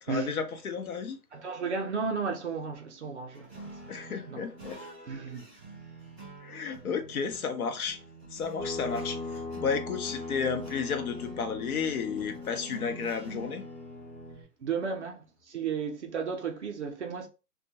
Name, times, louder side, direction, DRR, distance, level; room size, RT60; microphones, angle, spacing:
voice 1, 0.0-1.2 3.9-4.8 6.4-8.0 8.3-13.6, left 6 dB, 65° left, 0.6 m, -32 dB
voice 2, 1.3-3.5 4.0-4.4 5.1-5.5 14.6-17.3, right 5 dB, 50° right, 0.5 m, -34 dB
sound 1, 3.3-14.4, right 3 dB, 10° left, 0.5 m, -48 dB
sound 2, 8.6-14.3, left 3 dB, 45° left, 1.0 m, -39 dB
2.2 x 2.1 x 2.7 m
hypercardioid pair, 155°, 47 cm